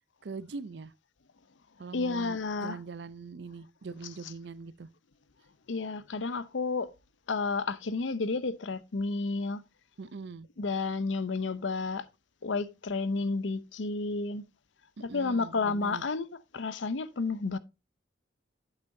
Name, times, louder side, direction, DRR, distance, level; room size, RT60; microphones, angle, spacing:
voice 1, 0.2-0.9 1.8-4.9 10.0-10.5 15.0-16.0, right 4 dB, 65° right, 0.5 m, -42 dB
voice 2, 1.9-2.8 5.7-6.9 7.3-9.6 10.6-12.1 12.4-14.4 15.0-16.3 16.5-17.6, left 3 dB, 90° left, 0.7 m, -31 dB
8.3 x 8.2 x 2.7 m
head